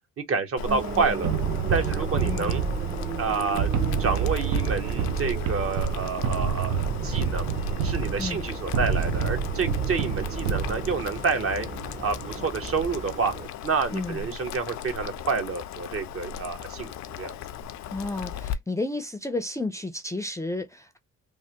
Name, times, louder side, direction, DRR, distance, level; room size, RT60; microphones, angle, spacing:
voice 1, 0.2-1.3 1.7-2.6 3.2-3.7 4.0-7.5 7.8-11.7 12.0-13.3 13.6-17.4, right 4 dB, 50° right, 1.0 m, -28 dB
Boiling, 0.6-18.5, left 5 dB, 65° left, 0.5 m, -37 dB
sound 1, 0.7-13.5, right 4 dB, 25° right, 0.7 m, -37 dB
sound 2, 1.2-11.2, right 7 dB, 70° right, 0.7 m, -28 dB
voice 2, 13.9-14.3 17.9-21.0, left 2 dB, 10° left, 0.5 m, -32 dB
3.3 x 2.1 x 2.9 m
cardioid pair, 90°, 30 cm